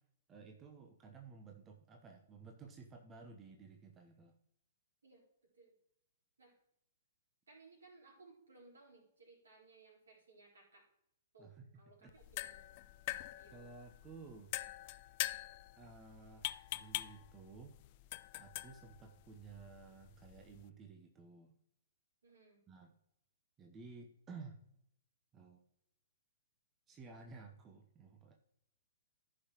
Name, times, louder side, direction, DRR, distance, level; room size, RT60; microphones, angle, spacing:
voice 1, 0.3-4.4 11.4-12.1 13.5-14.5 15.8-17.8 18.4-21.5 22.7-22.9 23.6-24.6 25.3-25.6 26.9-28.3, right 4 dB, 20° right, 2 dB, 0.9 m, -54 dB
voice 2, 7.5-10.9 11.3-12.7 13.3-13.6 22.2-22.6, right 3 dB, 70° right, -2 dB, 4.0 m, -62 dB
sound 1, 12.1-20.7, left 17 dB, 40° left, 0.4 m, -45 dB
14.5 x 5.7 x 3.0 m, 0.76 s
figure-of-eight pair, 115°, 0 cm